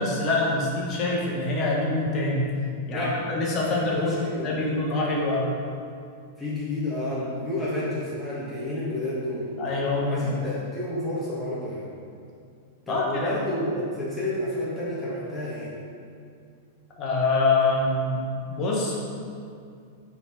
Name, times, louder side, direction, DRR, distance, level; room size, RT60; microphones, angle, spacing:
voice 1, 0.0-2.5 2.9-4.2 4.4-5.6 9.6-10.3 12.9-13.3 17.0-18.9, left 2 dB, 30° left, -4 dB, 1.4 m, -25 dB
voice 2, 2.9-3.2 3.6-4.7 6.4-9.5 10.0-11.9 12.9-15.7, left 1 dB, ahead, -10 dB, 1.4 m, -30 dB
5.6 x 4.0 x 5.0 m, 2.4 s
figure-of-eight pair, 95°, 0 cm